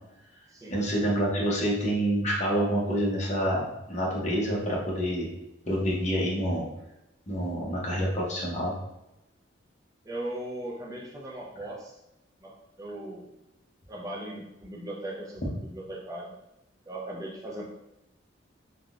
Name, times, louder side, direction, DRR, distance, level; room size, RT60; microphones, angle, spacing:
voice 1, 0.7-5.3 5.6-6.6 7.3-8.7, equal, 35° left, -4 dB, 0.8 m, -27 dB
voice 2, 10.0-11.9 12.4-13.3 13.9-16.3 16.9-17.6, right 1 dB, 20° right, -2 dB, 0.5 m, -38 dB
3.5 x 2.2 x 2.4 m, 0.90 s
head